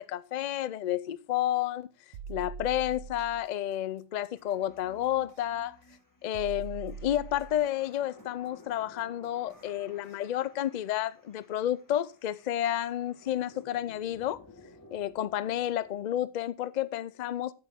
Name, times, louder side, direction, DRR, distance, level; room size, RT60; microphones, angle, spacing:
voice 1, 0.0-1.9 2.3-5.8 6.2-14.4 14.9-17.5, left 12 dB, 80° left, 0.3 m, -31 dB
sound 1, 2.1-3.4 5.3-5.4 6.3-7.7 9.5-9.6 10.1-10.2, right 6 dB, 85° right, 1.1 m, -42 dB
sound 2, 4.3-16.0, left 2 dB, 15° left, 1.3 m, -56 dB
10.0 x 8.7 x 3.6 m
omnidirectional pair, 1.4 m